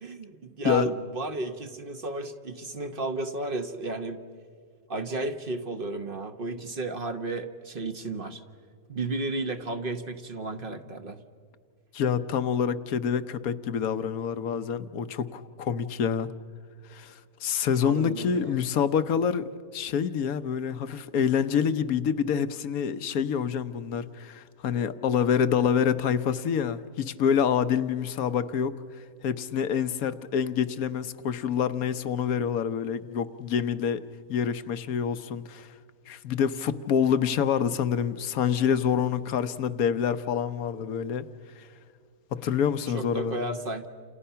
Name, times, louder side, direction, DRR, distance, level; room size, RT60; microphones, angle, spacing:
voice 1, 0.0-4.2 4.9-8.4 8.9-11.2 17.8-18.6 42.9-43.9, right 2 dB, 40° right, 8 dB, 1.2 m, -33 dB
voice 2, 11.9-16.3 16.9-19.4 19.7-28.8 29.2-34.0 34.3-35.7 36.1-41.3 41.6-41.7 42.3-43.5, left 7 dB, 70° left, 12 dB, 1.3 m, -27 dB
29.5 x 28.5 x 5.7 m, 2.1 s
omnidirectional pair, 1.6 m